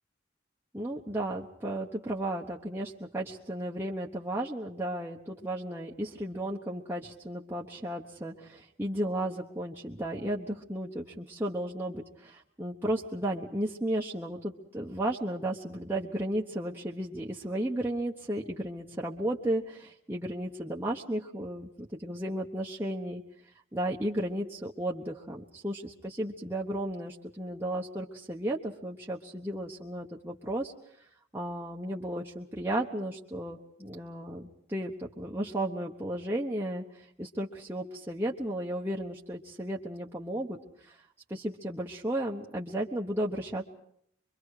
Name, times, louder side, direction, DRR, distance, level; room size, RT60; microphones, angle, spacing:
voice 1, 0.7-23.2 23.7-30.7 31.3-40.6 40.9-41.0 41.3-43.6, right 1 dB, 10° right, -4 dB, 1.1 m, -34 dB
24.5 x 23.5 x 4.9 m, 0.70 s
head